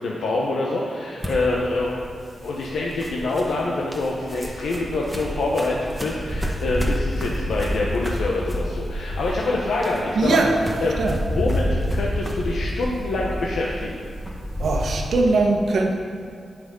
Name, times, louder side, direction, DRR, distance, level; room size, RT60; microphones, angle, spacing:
voice 1, 0.0-1.9 2.4-10.4 10.8-11.0 11.3-14.0, left 2 dB, 85° left, -3 dB, 1.0 m, -25 dB
sound 1, 1.2-15.2, equal, ahead, 1.2 m, -29 dB
voice 2, 10.1-11.2 14.6-15.9, right 3 dB, 70° right, 2 dB, 1.2 m, -21 dB
17.5 x 6.0 x 3.9 m, 2.3 s
wide cardioid pair, 120°, 0 cm